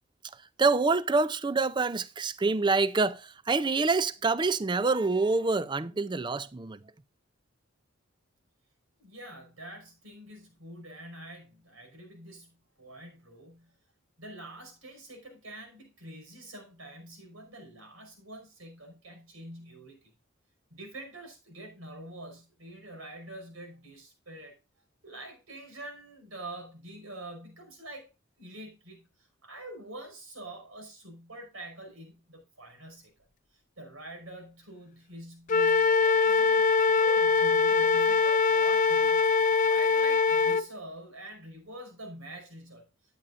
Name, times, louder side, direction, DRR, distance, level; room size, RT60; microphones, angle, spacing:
voice 1, 0.6-6.8, right 3 dB, 20° right, 0.4 m, -26 dB
voice 2, 9.0-13.8 14.2-20.0 20.7-24.6 25.0-28.1 28.4-33.1 33.8-42.9, right 1 dB, 90° right, 5.3 m, -46 dB
Wind instrument woodwind instrument, 35.5-40.6, left 5 dB, 40° left, 0.4 m, -23 dB
12.5 x 9.0 x 2.5 m
head